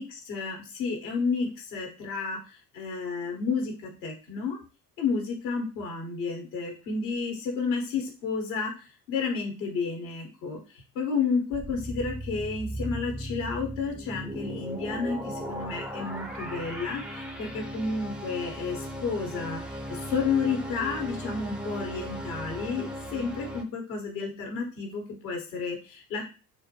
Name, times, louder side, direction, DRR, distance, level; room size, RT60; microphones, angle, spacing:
voice 1, 0.0-4.6 5.0-26.3, left 4 dB, 70° left, 1 dB, 1.2 m, -31 dB
sound 1, 11.5-23.6, equal, ahead, 0.4 m, -37 dB
3.8 x 2.2 x 2.9 m, 0.33 s
hypercardioid pair, 60°, 47 cm